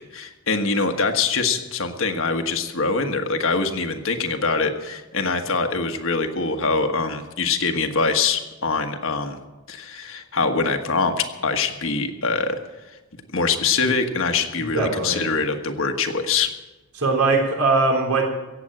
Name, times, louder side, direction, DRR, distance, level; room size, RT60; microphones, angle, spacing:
voice 1, 0.1-9.4 9.7-12.6 13.3-16.5, left 4 dB, 65° left, 6 dB, 1.4 m, -23 dB
voice 2, 14.6-15.2 17.0-18.2, right 3 dB, 90° right, 1 dB, 3.4 m, -21 dB
16.5 x 8.0 x 8.9 m, 1.1 s
head